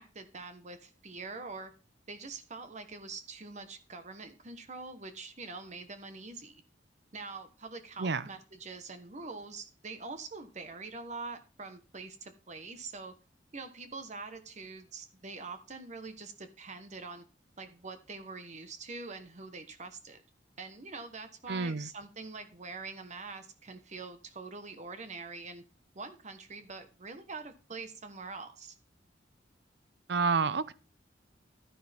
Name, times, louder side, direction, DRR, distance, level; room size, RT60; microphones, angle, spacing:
voice 1, 0.0-1.7 2.1-6.6 7.1-13.1 13.5-17.2 17.6-20.2 20.6-25.6 25.9-28.7, right 4 dB, 40° right, 1.2 m, -44 dB
voice 2, 21.5-21.9 30.1-30.7, right 4 dB, 65° right, 0.7 m, -29 dB
12.0 x 10.0 x 3.5 m
head